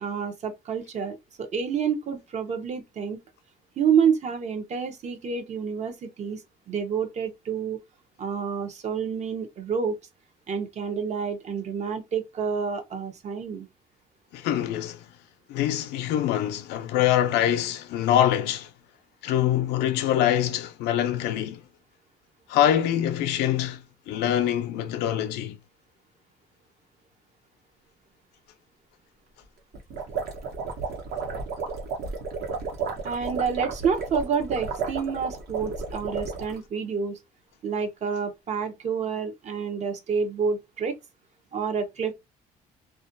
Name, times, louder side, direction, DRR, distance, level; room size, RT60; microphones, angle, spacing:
voice 1, 0.0-3.2 3.8-6.4 6.7-7.8 8.2-10.0 10.5-13.7 33.0-37.2 37.6-41.0 41.5-42.1, right 6 dB, 45° right, 0.6 m, -28 dB
voice 2, 14.3-15.0 15.5-18.7 19.2-21.6 22.5-25.6, left 11 dB, 90° left, 0.5 m, -24 dB
sound 1, 29.7-36.6, right 4 dB, 70° right, 1.0 m, -33 dB
2.3 x 2.2 x 2.5 m
cardioid pair, 110°, 17 cm